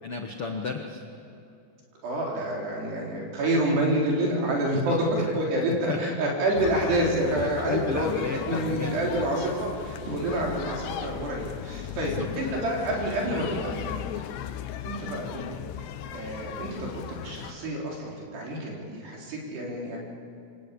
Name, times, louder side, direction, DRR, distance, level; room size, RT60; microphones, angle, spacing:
voice 1, 0.0-1.0 4.7-5.0 5.3-5.4 5.9-6.0 7.4-9.3 11.9-12.5, left 4 dB, 70° left, 3 dB, 1.3 m, -33 dB
voice 2, 2.0-4.9 5.3-8.1 8.5-13.9 14.8-15.6 16.1-20.0, right 1 dB, 75° right, -2 dB, 6.2 m, -28 dB
sound 1, 6.6-17.5, left 11 dB, 90° left, 3.1 m, -37 dB
28.0 x 24.0 x 8.6 m, 2.5 s
omnidirectional pair, 4.8 m